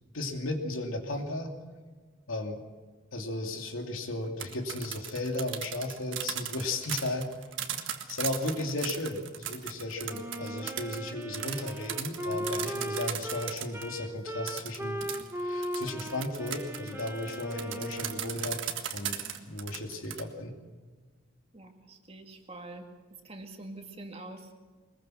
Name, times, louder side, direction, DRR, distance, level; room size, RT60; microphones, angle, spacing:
voice 1, 0.0-1.5 2.3-2.6 3.1-7.3 8.1-15.1 15.4-18.6 18.9-20.5, left 2 dB, 80° left, 3 dB, 2.6 m, -35 dB
sound 1, 4.2-13.9 14.5-20.2, right 9 dB, 60° right, 1.7 m, -37 dB
Wind instrument woodwind instrument, 10.1-18.6, equal, 10° right, 1.4 m, -38 dB
voice 2, 21.5-22.9 23.2-24.5, right 2 dB, 30° right, 4 dB, 2.0 m, -45 dB
22.0 x 21.5 x 6.4 m, 1.4 s
head